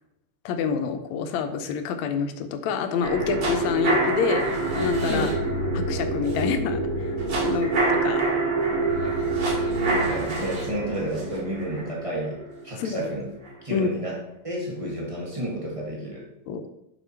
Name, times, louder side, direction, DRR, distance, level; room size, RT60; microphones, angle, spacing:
voice 1, 0.4-4.5 4.7-5.3 5.7-7.2 7.4-8.2 12.8-13.1 13.7-13.9 16.5-16.6, left 6 dB, 75° left, 8 dB, 1.9 m, -27 dB
sound 1, 3.0-13.0 13.4-13.5, right 2 dB, 85° right, 4.1 m, -26 dB
voice 2, 9.6-12.4 12.6-13.3 13.6-14.2 14.4-16.2, right 1 dB, 55° right, -3 dB, 0.3 m, -31 dB
6.8 x 6.6 x 4.5 m, 0.85 s
omnidirectional pair, 3.6 m